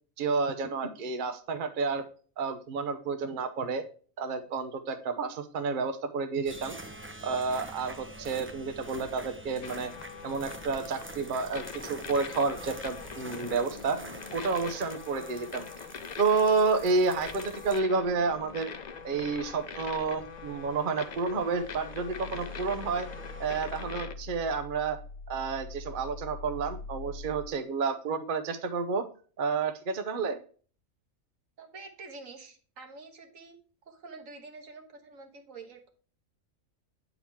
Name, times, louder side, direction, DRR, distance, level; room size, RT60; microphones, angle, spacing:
voice 1, 0.2-2.0 2.4-3.8 4.2-6.7 7.2-9.9 10.2-14.0 14.3-15.7 16.2-18.7 19.0-23.1 23.4-25.0 25.3-29.0 29.4-30.4, right 4 dB, 45° right, 7 dB, 0.8 m, -30 dB
sound 1, 6.5-23.9, right 1 dB, 20° right, 0.4 m, -47 dB
sound 2, 9.6-24.1, left 6 dB, 50° left, 0.5 m, -43 dB
sound 3, 21.5-27.5, left 3 dB, 70° left, 1.0 m, -43 dB
voice 2, 31.6-33.6 33.9-35.9, right 3 dB, 80° right, 4 dB, 1.6 m, -47 dB
8.6 x 4.0 x 4.4 m, 0.40 s
omnidirectional pair, 1.4 m